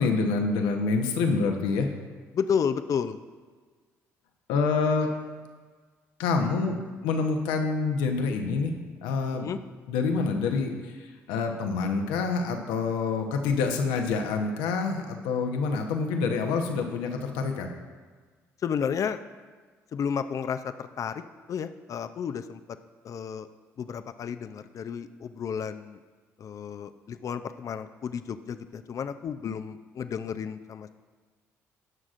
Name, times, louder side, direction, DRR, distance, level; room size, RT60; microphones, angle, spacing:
voice 1, 0.0-1.9 4.5-5.1 6.2-8.7 9.0-9.5 9.9-17.7, left 4 dB, 80° left, 4 dB, 1.0 m, -27 dB
voice 2, 2.3-3.2 9.3-9.6 18.6-19.2 19.9-21.2 21.5-22.6 23.0-23.5 23.8-26.0 26.4-30.9, left 7 dB, 50° left, 10 dB, 0.5 m, -32 dB
18.5 x 6.2 x 2.5 m, 1.5 s
hypercardioid pair, 55°, 7 cm